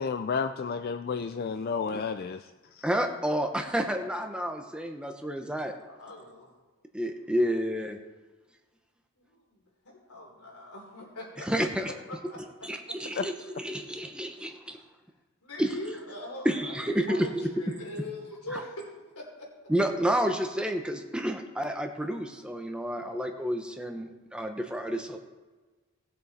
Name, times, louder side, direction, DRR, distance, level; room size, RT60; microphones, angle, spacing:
voice 1, 0.0-2.4 2.8-2.9 13.2-13.3, left 5 dB, 45° left, 8 dB, 0.3 m, -31 dB
voice 2, 2.8-5.7 6.9-8.0 11.4-11.9 12.7-14.8 15.6-15.7 16.4-17.5 18.5-18.6 19.7-25.2, equal, 5° right, 4 dB, 0.7 m, -30 dB
voice 3, 5.5-6.5 9.2-12.7 15.4-19.5, left 1 dB, 85° left, -1 dB, 3.3 m, -42 dB
17.5 x 6.7 x 4.2 m, 1.3 s
head